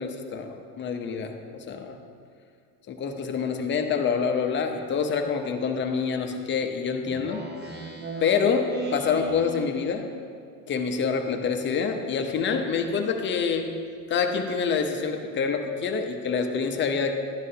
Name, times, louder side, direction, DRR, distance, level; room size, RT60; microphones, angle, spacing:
voice 1, 0.0-2.0 2.9-7.4 8.2-10.0 10.7-13.7 14.1-17.1, left 6 dB, 30° left, 4 dB, 0.8 m, -26 dB
Speech synthesizer, 7.1-10.1, right 3 dB, 25° right, 1.0 m, -37 dB
12.5 x 9.6 x 2.8 m, 2.2 s
cardioid pair, 135°, 39 cm